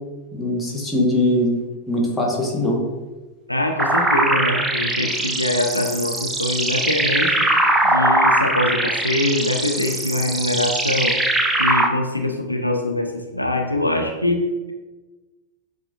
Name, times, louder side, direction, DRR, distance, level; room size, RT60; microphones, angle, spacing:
voice 1, 0.3-1.6 1.9-2.8, left 1 dB, 10° left, -3 dB, 1.0 m, -21 dB
voice 2, 3.5-7.4 7.9-11.2 11.6-14.7, left 1 dB, 85° left, 3 dB, 0.4 m, -23 dB
sound 1, 3.8-11.9, right 1 dB, 10° right, 0.4 m, -21 dB
7.2 x 2.4 x 2.4 m, 1.2 s
figure-of-eight pair, 90°, 0 cm